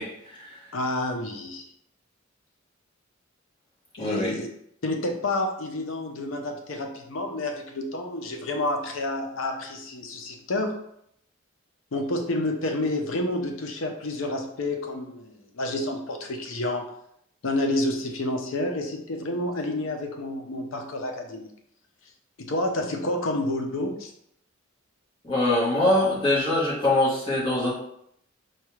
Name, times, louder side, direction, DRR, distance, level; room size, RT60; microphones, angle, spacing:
voice 1, 0.0-0.6 4.0-4.3 25.2-27.7, left 1 dB, 25° left, -7 dB, 1.2 m, -23 dB
voice 2, 0.7-1.7 4.0-4.5 4.8-10.8 11.9-16.8 17.4-21.5 22.4-24.1, left 1 dB, 75° left, 4 dB, 0.6 m, -29 dB
4.5 x 2.3 x 3.1 m, 0.73 s
head